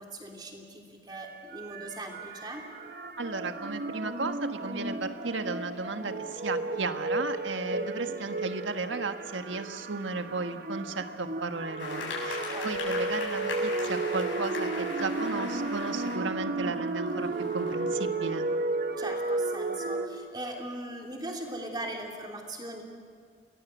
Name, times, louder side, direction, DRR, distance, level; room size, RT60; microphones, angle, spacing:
voice 1, 0.0-2.6 7.7-8.2 12.5-13.0 19.0-22.8, right 1 dB, 20° right, 1 dB, 3.1 m, -40 dB
sound 1, 1.1-20.1, right 2 dB, 50° right, 1.2 m, -33 dB
voice 2, 3.2-18.5, right 3 dB, 85° right, 8 dB, 1.5 m, -35 dB
sound 2, 11.8-16.1 16.9-17.7, left 3 dB, 90° left, 7.4 m, -38 dB
29.0 x 20.5 x 8.2 m, 2.1 s
head